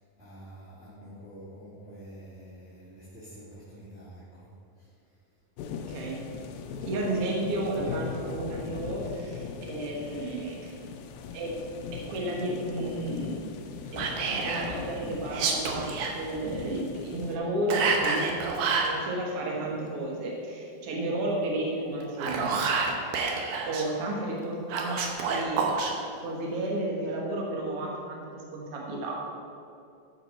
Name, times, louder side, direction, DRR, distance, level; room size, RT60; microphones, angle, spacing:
voice 1, 0.2-4.4 4.8-4.9, right 1 dB, 25° left, -12 dB, 1.7 m, -47 dB
sound 1, 5.6-17.4, left 6 dB, 80° left, 2.3 m, -39 dB
voice 2, 5.9-6.2 6.8-10.8 11.3-11.5 11.9-13.4 13.9-22.5 23.7-25.7 26.2-28.2 28.5-29.2, right 1 dB, 50° right, -2 dB, 1.9 m, -32 dB
Whispering, 14.0-14.7 15.3-16.1 17.7-18.9 22.0-23.8 24.7-25.9, right 5 dB, 70° right, 2.1 m, -28 dB
13.5 x 6.1 x 4.4 m, 2.5 s
omnidirectional pair, 4.3 m